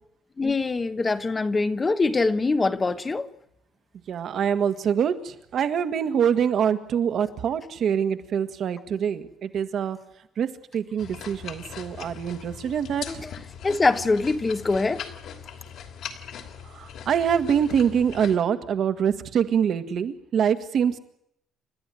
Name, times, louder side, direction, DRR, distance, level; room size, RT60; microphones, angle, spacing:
voice 1, 0.4-3.3 13.1-15.0, left 3 dB, 15° left, 11 dB, 1.0 m, -24 dB
voice 2, 4.1-10.0 10.4-10.5 10.7-13.2 16.7-21.0, right 8 dB, 45° right, 9 dB, 1.7 m, -25 dB
sound 1, 11.0-18.4, left 8 dB, 60° left, 3.0 m, -40 dB
30.0 x 13.5 x 10.0 m, 0.75 s
cardioid pair, 170°, 0 cm